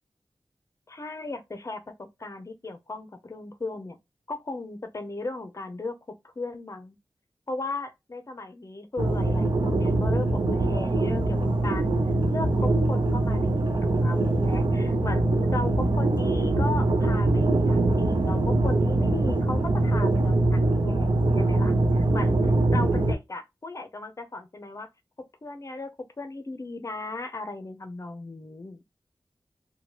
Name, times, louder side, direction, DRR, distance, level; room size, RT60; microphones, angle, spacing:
voice 1, 0.9-4.0 4.3-6.0 6.2-7.0 7.5-11.9 12.3-24.9 25.4-25.9 26.2-28.8, left 2 dB, 40° left, 0.6 m, -36 dB
sound 1, 9.0-23.1, right 2 dB, 75° right, 0.6 m, -23 dB
3.1 x 2.2 x 3.0 m
wide cardioid pair, 70°, 8 cm